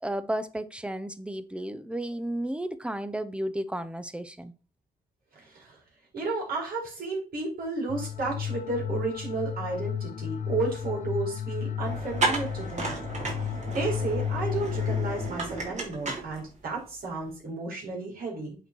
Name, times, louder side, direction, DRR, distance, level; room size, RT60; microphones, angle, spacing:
voice 1, 0.0-4.5, right 1 dB, 5° right, 0.8 m, -33 dB
voice 2, 5.3-5.8 6.1-13.0 13.4-18.6, right 3 dB, 70° right, 4.8 m, -32 dB
sound 1, 7.9-15.3, left 9 dB, 55° left, 0.7 m, -33 dB
sound 2, 11.8-16.8, right 3 dB, 50° right, 3.0 m, -33 dB
8.0 x 4.6 x 4.6 m
cardioid pair, 80°, 16 cm